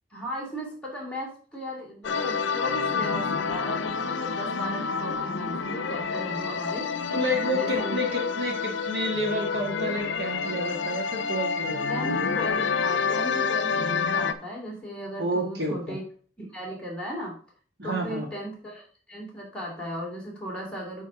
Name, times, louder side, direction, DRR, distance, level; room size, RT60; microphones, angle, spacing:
voice 1, 0.1-6.9 7.5-8.0 11.9-16.0 16.4-17.3 17.8-18.8 19.1-21.0, equal, 5° left, -4 dB, 2.7 m, -36 dB
sound 1, 2.0-14.3, left 5 dB, 85° left, 0.7 m, -28 dB
voice 2, 7.1-11.9 15.2-16.0 17.8-18.3, equal, 60° right, 2 dB, 1.8 m, -29 dB
8.7 x 4.2 x 4.8 m, 0.43 s
head